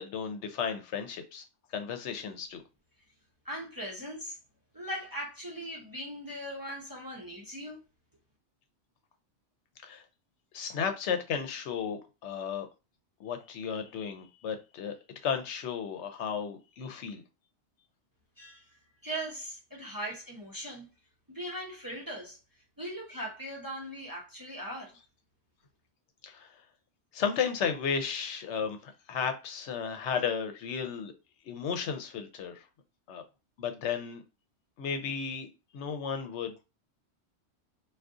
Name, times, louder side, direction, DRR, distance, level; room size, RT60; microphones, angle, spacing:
voice 1, 0.0-1.4 1.7-2.6 9.8-10.0 10.5-12.7 13.2-14.9 15.2-17.2 26.2-26.5 27.1-31.1 31.5-32.6 33.1-33.2 33.6-34.2 34.8-35.5 35.7-36.7, left 7 dB, 75° left, 0.9 m, -34 dB
voice 2, 3.4-4.4 4.7-7.8 18.4-18.8 19.0-20.9 21.3-22.4 22.8-25.0, equal, 20° right, 0.6 m, -39 dB
2.5 x 2.3 x 3.6 m
omnidirectional pair, 1.2 m